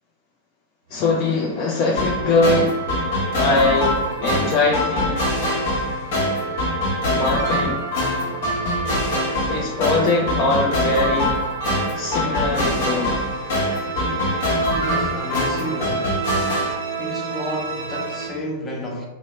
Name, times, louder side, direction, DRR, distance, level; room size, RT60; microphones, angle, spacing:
voice 1, 0.9-2.9 3.4-5.3 7.1-7.8 9.5-11.4 11.9-13.2, left 3 dB, 45° left, 0.4 m, -22 dB
sound 1, 0.9-18.3, right 5 dB, 65° right, 0.6 m, -35 dB
sound 2, 2.0-16.7, equal, 60° left, 0.9 m, -23 dB
voice 2, 14.7-16.2 17.0-19.1, equal, 20° left, 0.8 m, -30 dB
2.7 x 2.0 x 3.1 m
hypercardioid pair, 110°, 0 cm